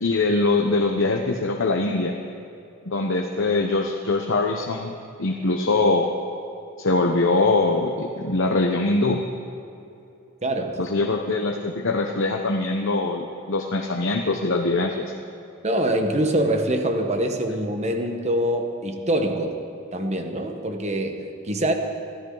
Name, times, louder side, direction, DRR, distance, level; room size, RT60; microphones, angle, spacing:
voice 1, 0.0-2.1 2.9-6.1 6.8-9.2 10.8-15.1, left 3 dB, 60° left, 2 dB, 1.0 m, -23 dB
voice 2, 10.4-10.8 15.6-19.6 19.9-21.7, right 1 dB, 30° right, 4 dB, 1.3 m, -24 dB
24.5 x 15.0 x 4.0 m, 2.8 s
head